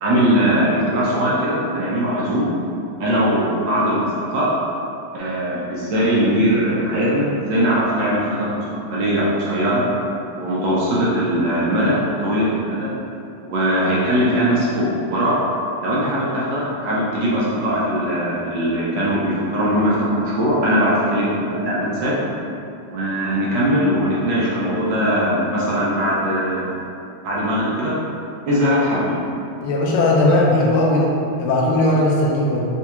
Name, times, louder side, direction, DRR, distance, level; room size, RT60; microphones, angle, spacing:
voice 1, 0.0-2.5 3.0-4.5 5.1-8.6 8.9-9.8 10.3-12.9 13.4-15.3 15.8-22.2 22.9-26.7 27.2-27.9 28.5-29.2, equal, 70° right, -7 dB, 1.2 m, -20 dB
voice 2, 29.6-31.1 31.4-32.7, left 1 dB, 90° left, -2 dB, 1.5 m, -17 dB
4.4 x 2.3 x 2.9 m, 2.7 s
omnidirectional pair, 2.3 m